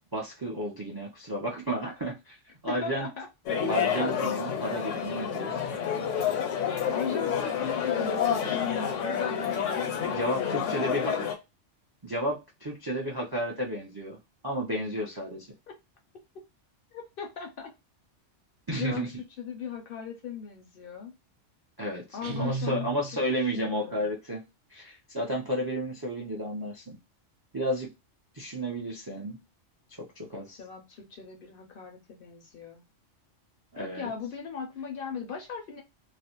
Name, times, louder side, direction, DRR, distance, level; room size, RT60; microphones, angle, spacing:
voice 1, 0.0-2.4 2.6-3.1 3.7-5.7 10.0-11.1 12.0-14.2 14.4-15.5 18.7-19.1 21.8-22.0 22.4-24.4 24.7-27.0 27.5-27.9 28.3-29.4 30.0-30.6 33.7-34.1, right 1 dB, 40° right, -2 dB, 0.3 m, -32 dB
voice 2, 2.7-3.3 6.9-9.3 10.3-11.3 15.7-15.8 16.9-17.7 18.8-21.2 22.1-22.9 23.1-24.1 30.6-32.8 33.8-35.8, left 6 dB, 60° left, 3 dB, 0.6 m, -38 dB
sound 1, 3.5-11.3, left 8 dB, 80° left, 1.0 m, -29 dB
Guitar, 22.2-23.5, right 4 dB, 60° right, 0.8 m, -35 dB
2.4 x 2.0 x 2.8 m, 0.25 s
omnidirectional pair, 1.3 m